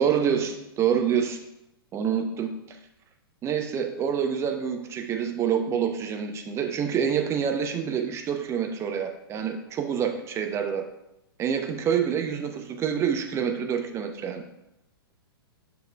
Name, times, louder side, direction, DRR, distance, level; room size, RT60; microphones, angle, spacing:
voice 1, 0.0-1.4 1.9-2.5 3.4-10.9 11.4-14.4, right 8 dB, 20° right, 5 dB, 0.7 m, -27 dB
7.3 x 6.1 x 2.3 m, 0.87 s
figure-of-eight pair, 110°, 13 cm